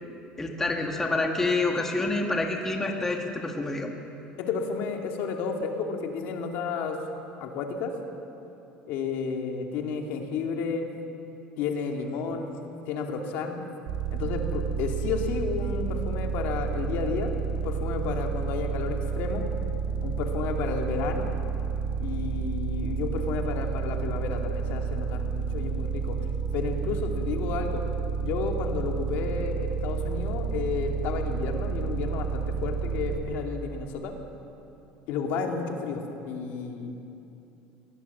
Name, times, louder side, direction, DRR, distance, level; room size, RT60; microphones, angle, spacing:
voice 1, 0.4-3.9, left 2 dB, 15° left, 2 dB, 1.7 m, -27 dB
voice 2, 4.4-7.0 7.4-8.0 8.9-10.9 11.6-13.6 14.1-19.5 20.0-21.3 22.0-26.2 26.5-27.8 28.2-34.1 35.1-37.0, left 5 dB, 65° left, 2 dB, 2.5 m, -32 dB
sound 1, 13.9-33.2, right 6 dB, 70° right, 2.7 m, -30 dB
21.5 x 18.0 x 7.3 m, 2.8 s
cardioid pair, 140°, 3 cm